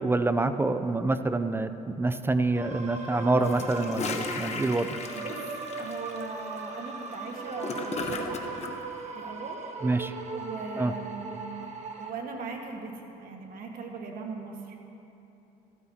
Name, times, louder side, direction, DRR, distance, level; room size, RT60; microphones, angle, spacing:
voice 1, 0.0-4.9 9.8-10.1 10.8-10.9, right 2 dB, 15° right, 11 dB, 0.4 m, -26 dB
sound 1, 2.5-12.1, right 4 dB, 40° right, 1.3 m, -38 dB
Gurgling / Toilet flush, 3.4-8.7, left 4 dB, 40° left, 1.0 m, -36 dB
voice 2, 5.1-5.4 5.8-8.4 9.1-9.6 10.3-11.7 12.0-14.8, right 4 dB, 60° right, 1 dB, 1.5 m, -39 dB
14.5 x 13.5 x 2.8 m, 2.9 s
cardioid pair, 110°, 17 cm